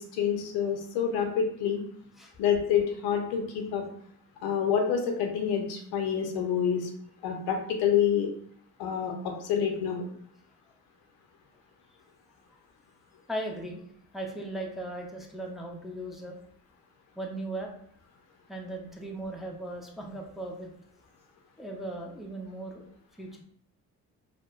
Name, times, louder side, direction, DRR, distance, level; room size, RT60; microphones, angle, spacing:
voice 1, 0.0-1.8 2.4-3.9 4.4-6.9 7.2-8.3 8.8-10.1, left 8 dB, 85° left, 3 dB, 0.6 m, -27 dB
voice 2, 13.3-13.8 14.1-16.4 17.2-17.7 18.5-20.7 21.6-22.8 23.2-23.4, right 1 dB, ahead, 0 dB, 0.5 m, -37 dB
2.8 x 2.1 x 2.4 m, 0.63 s
supercardioid pair, 65°, 37 cm